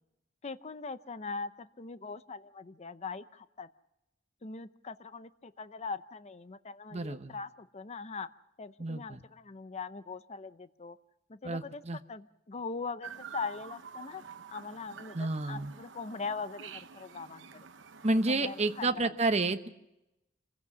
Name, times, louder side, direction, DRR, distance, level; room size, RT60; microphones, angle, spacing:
voice 1, 0.4-3.7 4.4-8.3 8.6-11.0 11.3-14.2 14.5-17.7 18.3-19.1, left 4 dB, 35° left, 13 dB, 0.6 m, -41 dB
voice 2, 6.9-7.4 8.8-9.2 11.4-12.0 15.1-15.7 18.0-19.7, right 2 dB, 35° right, 8 dB, 1.0 m, -30 dB
Chirp tweet, 13.0-18.9, right 6 dB, 75° right, 0.9 m, -48 dB
26.5 x 16.0 x 6.1 m, 0.90 s
head